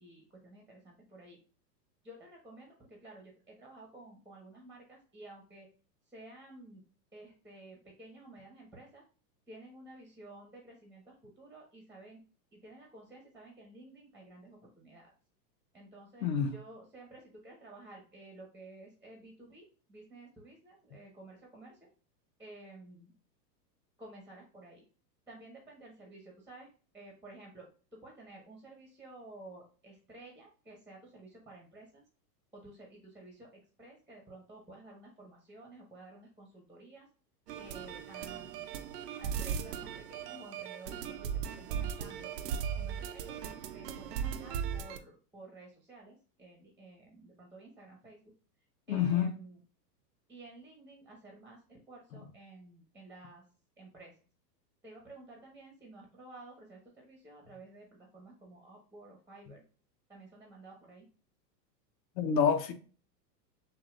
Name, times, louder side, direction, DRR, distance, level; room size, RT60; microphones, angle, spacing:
voice 1, 0.0-1.4 2.0-5.7 6.1-6.8 7.1-9.0 9.5-12.2 12.5-15.1 15.7-21.8 22.4-23.1 24.0-24.8 25.3-32.0 32.5-37.1 37.6-38.7 39.2-42.3 42.7-48.3 48.9-49.6 50.3-53.4 53.8-54.1 54.8-59.6 60.1-61.1, right 2 dB, 5° right, 1.3 m, -53 dB
voice 2, 16.2-16.5 48.9-49.3 62.2-62.7, left 7 dB, 85° left, 1.1 m, -27 dB
sound 1, 37.5-45.0, right 8 dB, 70° right, 0.8 m, -38 dB
6.9 x 2.7 x 2.5 m
hypercardioid pair, 130°, 50 cm